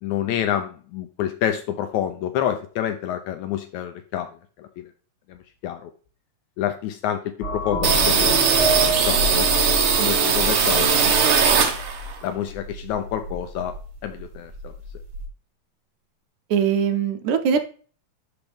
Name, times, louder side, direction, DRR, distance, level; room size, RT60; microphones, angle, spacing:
voice 1, 0.0-4.3 4.6-4.9 5.3-5.4 5.6-5.9 6.6-11.6 12.2-13.8 14.0-14.7, left 10 dB, 80° left, 8 dB, 1.7 m, -28 dB
sound 1, 7.4-11.0, right 2 dB, 25° left, 1.7 m, -29 dB
sound 2, 7.8-12.2 12.5-13.9 14.2-14.3 14.5-15.3, right 5 dB, 60° right, 1.6 m, -20 dB
voice 2, 16.5-17.6, right 7 dB, 75° right, 7 dB, 2.0 m, -21 dB
11.5 x 4.0 x 3.5 m, 0.41 s
omnidirectional pair, 3.9 m